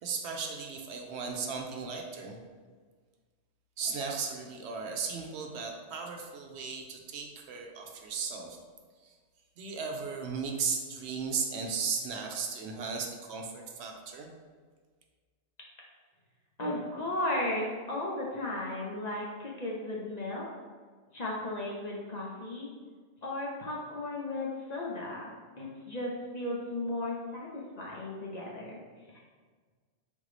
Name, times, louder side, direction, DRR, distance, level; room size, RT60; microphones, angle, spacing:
voice 1, 0.0-2.4 3.8-8.6 9.0-9.2 9.6-14.3, right 5 dB, 70° right, 2 dB, 0.8 m, -36 dB
voice 2, 16.6-20.5 21.1-22.7 23.2-28.8, left 1 dB, 45° left, -4 dB, 0.7 m, -35 dB
3.8 x 3.6 x 3.2 m, 1.5 s
omnidirectional pair, 1.2 m